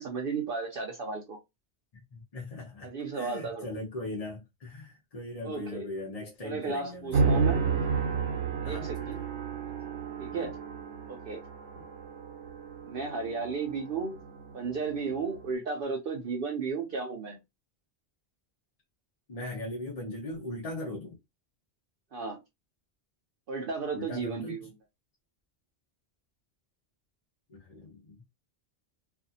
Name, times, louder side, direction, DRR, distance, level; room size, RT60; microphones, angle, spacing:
voice 1, 0.0-1.4 2.8-3.7 5.4-5.9 6.4-7.6 8.6-9.2 10.2-10.6 11.1-11.4 12.8-14.2 14.5-17.4 22.1-22.4 23.5-24.7, right 4 dB, 60° right, 0.7 m, -34 dB
voice 2, 2.1-7.4 8.6-9.2 10.3-10.5 11.7-11.8 19.3-21.2 23.9-24.5 27.5-28.2, left 2 dB, 40° left, 0.8 m, -39 dB
sound 1, 7.1-15.5, right 5 dB, 85° right, 0.9 m, -32 dB
2.5 x 2.4 x 2.6 m
omnidirectional pair, 1.2 m